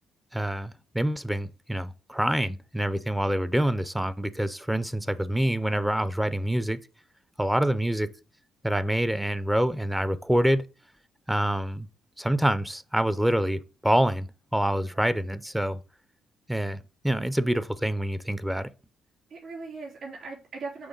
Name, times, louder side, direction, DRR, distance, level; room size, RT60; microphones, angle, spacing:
voice 1, 0.3-6.8 7.4-8.1 8.6-10.6 11.3-11.9 12.2-15.8 16.5-18.7, right 1 dB, 5° right, 0.4 m, -26 dB
voice 2, 14.8-15.2 19.3-20.9, right 4 dB, 55° right, 3.4 m, -40 dB
6.1 x 3.2 x 5.2 m
cardioid pair, 90°, 0 cm